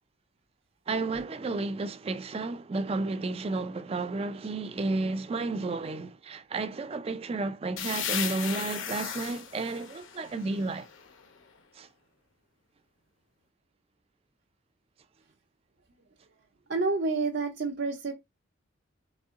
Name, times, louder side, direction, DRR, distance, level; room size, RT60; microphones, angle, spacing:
voice 1, 0.9-10.9 11.7-11.9, right 3 dB, 30° right, 0.3 m, -32 dB
sound 1, 7.8-11.4, left 8 dB, 70° left, 0.8 m, -36 dB
voice 2, 16.7-18.1, right 3 dB, 55° right, 0.7 m, -28 dB
4.0 x 3.6 x 3.6 m
head